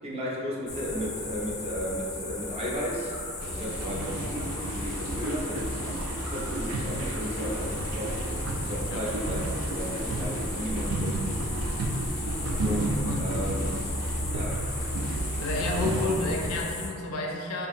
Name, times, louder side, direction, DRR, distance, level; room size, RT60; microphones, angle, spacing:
voice 1, 0.0-3.1 3.4-4.4 4.7-6.0 6.3-8.1 8.6-11.2 12.6-13.6 14.3-14.6, equal, 30° right, -5 dB, 0.5 m, -34 dB
sound 1, 0.7-16.9, left 2 dB, 35° left, 0.4 m, -35 dB
sound 2, 2.9-3.3 6.1-6.4, right 3 dB, 65° right, 0.7 m, -46 dB
sound 3, 3.4-16.6, right 2 dB, 85° right, 0.3 m, -32 dB
voice 2, 15.4-17.7, left 2 dB, 90° left, 0 dB, 0.4 m, -31 dB
2.8 x 2.4 x 2.6 m, 2.3 s
head